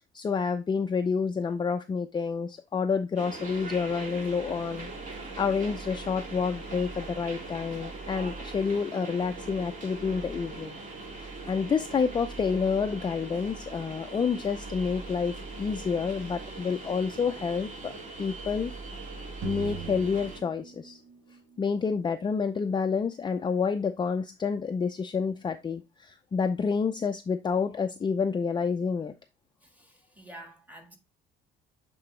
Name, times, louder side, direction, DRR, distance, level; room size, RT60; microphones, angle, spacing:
voice 1, 0.1-10.8 11.2-15.3 15.6-17.9 18.2-18.7 19.4-21.0 21.6-29.1, left 5 dB, 25° left, 0.5 m, -29 dB
sound 1, 3.2-20.4, right 3 dB, 40° right, 2.3 m, -41 dB
sound 2, 19.4-21.6, right 8 dB, 65° right, 1.0 m, -40 dB
voice 2, 29.6-31.0, right 1 dB, 10° right, 1.7 m, -49 dB
8.0 x 3.9 x 3.1 m
cardioid pair, 110°, 20 cm